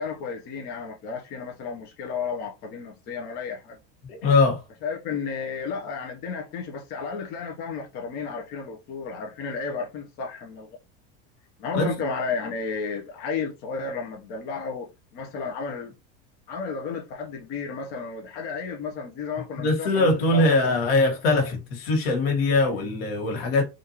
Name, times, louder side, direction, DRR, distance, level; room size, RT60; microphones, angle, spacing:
voice 1, 0.0-3.8 4.8-10.8 11.6-15.9 16.5-20.7, left 5 dB, 35° left, 0.7 m, -33 dB
voice 2, 4.1-4.6 11.7-11.9 19.6-23.6, left 2 dB, 85° left, 1.5 m, -22 dB
3.5 x 2.6 x 2.8 m
supercardioid pair, 170°, 29 cm